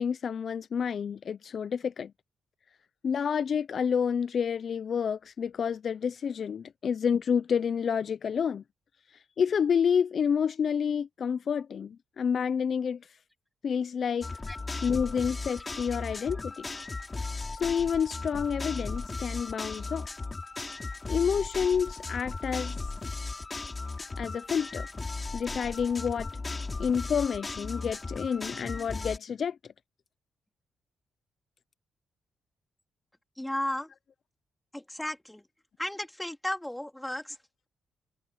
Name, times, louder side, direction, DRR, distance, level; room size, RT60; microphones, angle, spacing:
voice 1, 0.0-2.1 3.0-8.6 9.4-13.0 13.6-14.3 14.8-16.6 17.5-20.1 21.1-22.8 24.2-24.9 25.3-26.4 26.8-29.6, left 7 dB, 60° left, 0.6 m, -29 dB
sound 1, 14.2-29.2, left 3 dB, 30° left, 5.3 m, -36 dB
voice 2, 33.4-33.9 34.7-35.4 35.8-37.4, left 1 dB, 10° left, 3.6 m, -34 dB
supercardioid pair, 65°, 0 cm